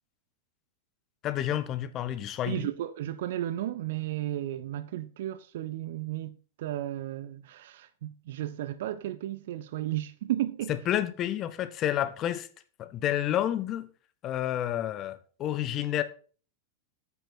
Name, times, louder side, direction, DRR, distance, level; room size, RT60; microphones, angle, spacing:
voice 1, 1.2-2.7 10.7-12.5 12.8-13.9 14.2-16.0, left 11 dB, 35° left, 1.1 m, -30 dB
voice 2, 2.5-10.7, right 13 dB, 55° right, 0.6 m, -34 dB
9.0 x 8.4 x 4.3 m
figure-of-eight pair, 90°, 0 cm